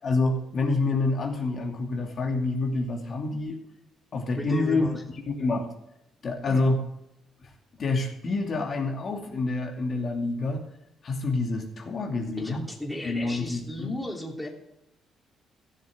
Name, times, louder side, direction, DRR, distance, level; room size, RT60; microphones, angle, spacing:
voice 1, 0.0-3.6 4.1-4.9 5.4-5.7 6.2-6.8 7.4-7.5 7.8-10.6 11.0-12.7 13.0-13.9, left 3 dB, 50° left, 1 dB, 2.6 m, -27 dB
voice 2, 4.4-5.0 6.5-6.7 12.4-14.5, left 1 dB, 5° left, -1 dB, 3.1 m, -35 dB
15.0 x 7.0 x 7.7 m, 0.85 s
cardioid pair, 90°, 0 cm